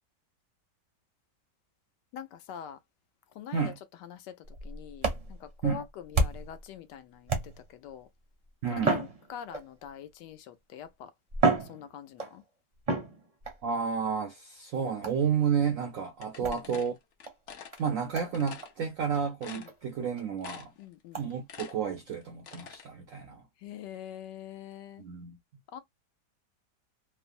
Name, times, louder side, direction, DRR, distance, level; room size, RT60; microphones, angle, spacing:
voice 1, 2.1-2.8 3.3-3.7 4.0-8.1 8.7-11.1 11.6-12.4 16.4-16.9 19.5-19.7 20.8-21.2 23.6-25.0 25.7-25.8, left 9 dB, 80° left, 1.2 m, -44 dB
sound 1, 4.4-6.6 7.3-7.9 8.8-9.9 10.7-10.8 11.3-12.4 12.9-13.6 15.0-15.3 16.4-16.6 17.2-17.3 17.7-17.8 18.1-18.3 18.6-18.7 19.1-19.2 19.7-19.8 20.2-20.3 21.1-21.3, right 3 dB, 40° right, 0.5 m, -30 dB
voice 2, 8.6-9.0 13.6-17.0 17.8-20.7 21.2-23.4 25.0-25.4, right 7 dB, 80° right, 0.7 m, -31 dB
sound 2, 16.2-17.8 18.3-18.7 19.1-19.2 19.4-20.1 20.4-20.8 21.2-22.9, left 7 dB, 60° left, 0.8 m, -46 dB
3.1 x 2.0 x 2.4 m
omnidirectional pair, 1.9 m